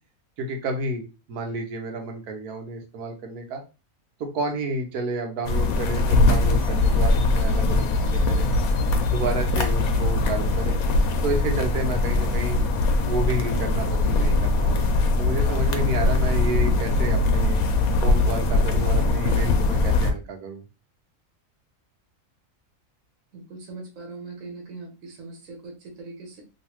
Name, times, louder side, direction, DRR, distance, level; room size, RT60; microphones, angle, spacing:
voice 1, 0.4-3.6 4.2-8.5 9.1-10.8 11.2-12.6 13.1-14.8 15.2-17.6 18.0-20.6, right 2 dB, 85° right, 3 dB, 1.3 m, -30 dB
sound 1, 5.4-20.1, left 2 dB, 80° left, 1.1 m, -21 dB
voice 2, 23.3-26.4, right 3 dB, 65° right, 1 dB, 1.2 m, -40 dB
3.1 x 2.7 x 2.8 m, 0.30 s
omnidirectional pair, 1.6 m